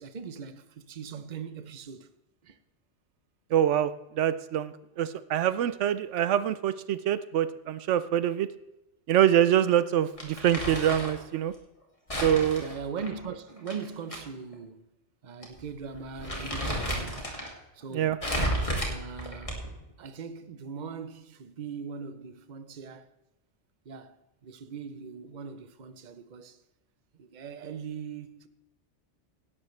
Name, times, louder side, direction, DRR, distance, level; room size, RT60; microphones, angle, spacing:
voice 1, 0.0-2.1 2.4-2.6 12.6-14.9 15.2-17.3 17.7-18.2 18.8-19.6 20.0-23.1 23.8-26.6 27.1-28.5, right 6 dB, 45° right, 0.8 m, -40 dB
voice 2, 3.5-8.5 9.1-11.5 12.2-12.6 17.9-18.2, right 10 dB, 80° right, 0.9 m, -25 dB
Crumpling crinkling, 10.2-11.2 12.1-14.2 14.5-14.6 15.4-15.6 15.9-17.5 18.2-19.8, equal, 30° left, 2.4 m, -32 dB
17.0 x 12.0 x 3.2 m
omnidirectional pair, 1.2 m